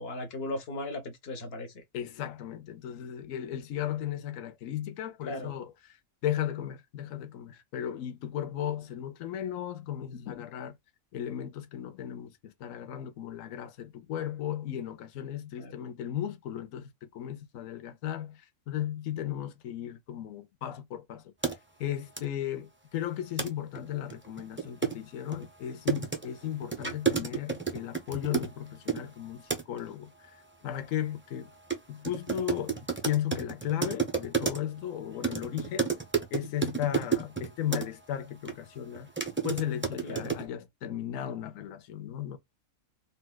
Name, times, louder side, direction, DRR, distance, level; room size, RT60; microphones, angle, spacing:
voice 1, 0.0-1.8 5.2-5.5 15.6-15.7 40.0-40.4, left 1 dB, 50° left, 1.0 m, -37 dB
voice 2, 1.9-6.0 6.2-10.8 11.1-21.5 21.8-30.4 30.6-31.5 31.9-35.9 36.3-39.1 39.4-42.4, left 11 dB, 75° left, 1.0 m, -35 dB
sound 1, 21.4-21.5 22.2-22.3 23.4-23.5 23.8-23.9 24.1-29.0 29.5-29.8 31.7-31.8 32.0-34.8 35.2-37.9 38.4-38.5 38.9-40.4, right 5 dB, 15° right, 0.4 m, -31 dB
4.1 x 2.3 x 2.2 m
omnidirectional pair, 1.4 m